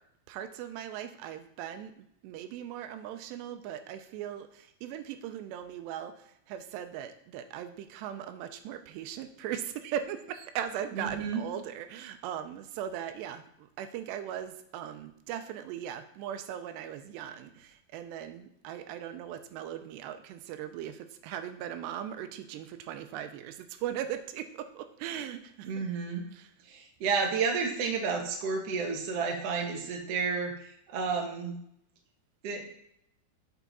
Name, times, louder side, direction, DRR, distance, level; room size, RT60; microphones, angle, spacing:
voice 1, 0.3-25.8 26.3-26.5, right 10 dB, 85° right, 9 dB, 2.8 m, -39 dB
voice 2, 10.9-11.4 25.6-26.2 26.6-31.6 32.4-32.6, right 5 dB, 70° right, 1 dB, 1.5 m, -31 dB
9.2 x 6.9 x 4.1 m, 0.74 s
omnidirectional pair, 4.9 m